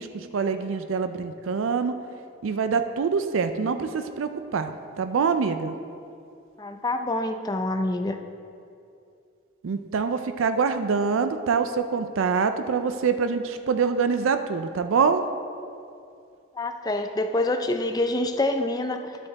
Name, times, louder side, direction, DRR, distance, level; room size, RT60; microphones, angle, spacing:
voice 1, 0.0-1.9 2.4-5.8 9.6-15.2, right 5 dB, 90° right, 9 dB, 0.4 m, -25 dB
voice 2, 6.6-8.2 16.5-19.2, left 2 dB, 20° left, 6 dB, 0.4 m, -26 dB
10.0 x 7.0 x 4.0 m, 2.5 s
head